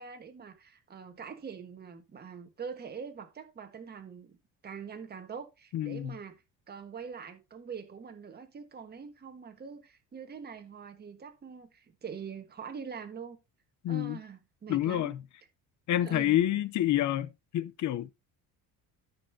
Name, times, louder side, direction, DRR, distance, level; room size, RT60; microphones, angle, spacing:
voice 1, 0.0-4.4 4.6-13.4 13.9-15.2 16.0-16.6, right 6 dB, 25° right, 1.4 m, -44 dB
voice 2, 5.7-6.1 13.8-14.2 14.7-15.2 15.9-18.1, left 13 dB, 45° left, 0.7 m, -28 dB
13.5 x 5.4 x 2.7 m
cardioid pair, 150°, 40 cm